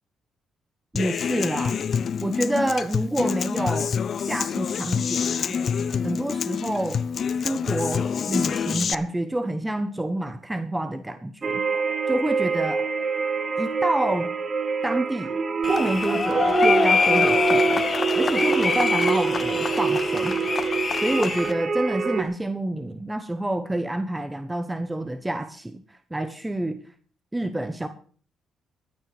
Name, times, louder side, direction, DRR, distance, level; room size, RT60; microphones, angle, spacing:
voice 1, 0.9-1.8 2.2-3.9 4.2-5.6 6.0-7.0 7.3-11.6 12.1-12.8 13.6-14.3 14.8-15.3 15.7-17.8 18.1-20.3 21.0-26.8 27.3-27.9, right 1 dB, 10° right, 10 dB, 1.1 m, -28 dB
Human voice / Acoustic guitar, 1.0-8.9, left 7 dB, 55° left, 0.6 m, -27 dB
sound 1, 11.4-22.2, right 5 dB, 40° right, 1.7 m, -25 dB
sound 2, 15.6-21.5, left 5 dB, 35° left, 1.3 m, -24 dB
14.0 x 9.5 x 5.9 m, 0.43 s
cardioid pair, 90°, 0 cm